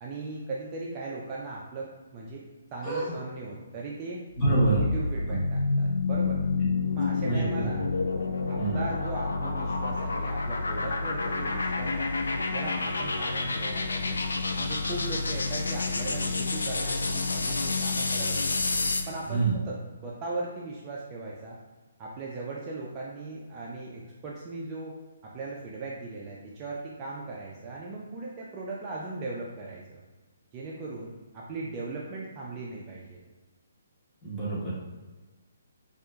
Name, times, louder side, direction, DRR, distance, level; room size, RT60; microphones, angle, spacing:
voice 1, 0.0-2.4 2.7-4.2 4.7-6.5 6.9-7.9 8.5-14.2 14.5-18.4 19.1-21.6 22.0-24.9 25.2-30.0 30.5-33.2, right 3 dB, 25° right, -4 dB, 0.4 m, -38 dB
voice 2, 2.8-3.1 4.4-4.8 5.3-5.4 7.2-7.4 8.6-8.8 19.3-19.6 34.2-34.7, right 2 dB, 10° left, -10 dB, 1.3 m, -26 dB
sound 1, 4.5-19.2, left 3 dB, 70° left, 0.3 m, -29 dB
4.3 x 2.4 x 2.4 m, 1.3 s
figure-of-eight pair, 135°, 0 cm